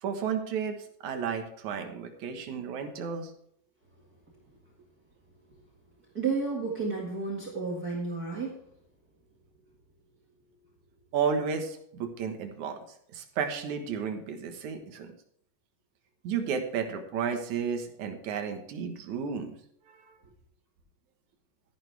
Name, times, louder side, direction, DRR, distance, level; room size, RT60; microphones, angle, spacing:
voice 1, 0.0-3.3 11.1-12.8 13.1-15.1 16.2-19.6 19.9-20.0, right 6 dB, 65° right, 6 dB, 2.7 m, -32 dB
voice 2, 6.1-8.5, right 4 dB, 35° right, -3 dB, 2.0 m, -31 dB
13.5 x 11.0 x 3.4 m, 0.71 s
omnidirectional pair, 3.7 m